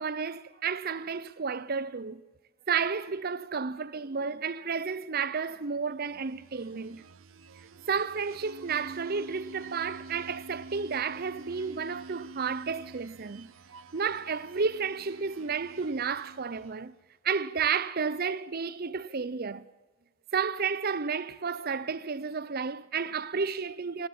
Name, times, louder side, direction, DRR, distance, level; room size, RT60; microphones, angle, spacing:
voice 1, 0.0-2.3 2.7-7.0 7.9-13.5 13.9-16.9 17.2-19.7 20.3-24.1, right 5 dB, 50° right, 0.7 m, -32 dB
sound 1, 6.1-16.9, right 3 dB, 80° right, 0.9 m, -48 dB
21.0 x 18.0 x 8.8 m
head